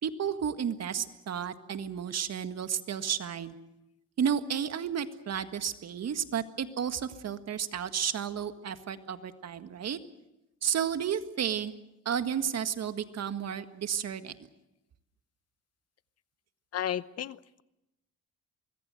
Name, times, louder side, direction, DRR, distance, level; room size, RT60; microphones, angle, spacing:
voice 1, 0.0-3.5 4.2-10.0 10.6-11.7 12.0-14.4, right 8 dB, 55° right, 10 dB, 1.8 m, -32 dB
voice 2, 16.7-17.6, left 10 dB, 55° left, 17 dB, 0.8 m, -33 dB
24.5 x 22.0 x 7.7 m, 0.91 s
cardioid pair, 90°, 30 cm